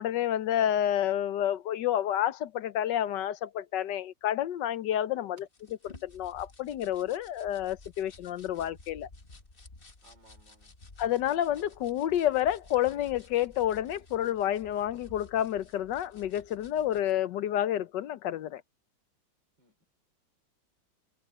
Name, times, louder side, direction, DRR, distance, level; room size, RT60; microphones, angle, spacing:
voice 1, 0.0-5.5 5.8-9.1 11.0-18.6, left 11 dB, 70° left, 1.3 m, -29 dB
sound 1, 5.4-17.1, left 3 dB, 30° left, 1.6 m, -54 dB
voice 2, 10.0-10.7 19.6-19.8, right 2 dB, 70° right, 5.9 m, -61 dB
omnidirectional pair, 2.0 m